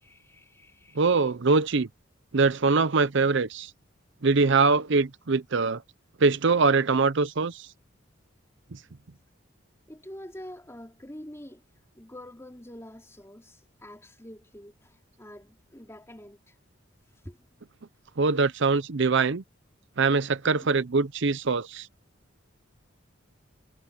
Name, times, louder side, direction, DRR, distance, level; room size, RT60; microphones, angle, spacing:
voice 1, 0.0-1.2 9.9-11.6 11.9-16.5 17.2-17.4 20.6-20.7, left 1 dB, 15° left, 3.4 m, -46 dB
voice 2, 1.0-1.9 2.3-3.7 4.2-5.8 6.2-7.7 8.7-8.8 18.2-19.4 20.0-21.9, right 4 dB, 60° right, 0.7 m, -23 dB
head